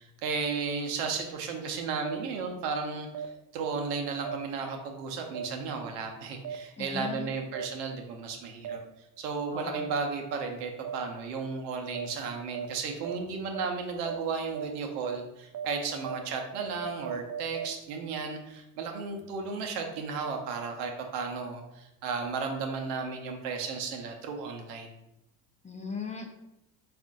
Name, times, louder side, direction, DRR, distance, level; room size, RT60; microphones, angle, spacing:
voice 1, 0.0-8.8 9.2-24.9, right 5 dB, 90° right, 3 dB, 0.7 m, -34 dB
sound 1, 2.0-2.1 3.1-3.2 4.2-4.3 5.3-5.4 6.4-6.5 7.5-7.6 8.6-8.7 9.7-9.8 10.8-10.9 11.9-12.0 12.5-12.6 13.0-13.1 13.5-13.6 14.0-14.1 14.5-14.6 15.0-15.1 15.5-15.6 16.0-16.1 16.5-17.6, right 9 dB, 35° right, 0.4 m, -36 dB
voice 2, 6.8-7.3 9.5-9.8 25.6-26.3, left 5 dB, 15° left, 2 dB, 0.6 m, -37 dB
3.6 x 2.5 x 3.7 m, 0.90 s
hypercardioid pair, 70°, 47 cm